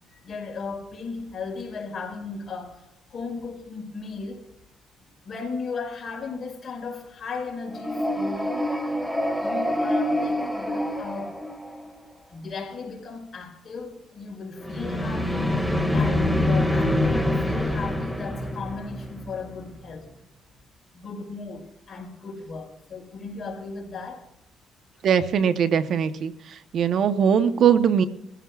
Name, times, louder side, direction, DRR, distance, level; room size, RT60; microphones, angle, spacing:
voice 1, 0.1-4.5 5.2-8.5 9.4-11.4 12.3-20.1 20.9-24.3, left 4 dB, 45° left, 5.3 m, -36 dB
sound 1, 7.7-12.0 14.6-19.6, left 1 dB, ahead, 2.0 m, -26 dB
voice 2, 25.0-26.3 26.7-28.1, right 8 dB, 65° right, 0.9 m, -20 dB
23.0 x 15.0 x 2.4 m
cardioid pair, 90°, 0 cm